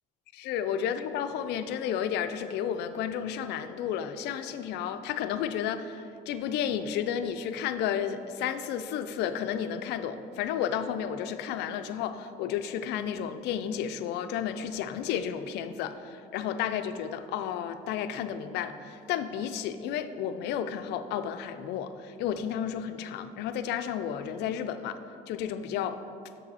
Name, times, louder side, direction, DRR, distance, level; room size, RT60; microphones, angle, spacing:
voice 1, 0.3-25.0 25.3-26.0, left 9 dB, 80° left, 10 dB, 0.4 m, -32 dB
7.4 x 5.5 x 4.1 m, 2.5 s
cardioid pair, 110°, 17 cm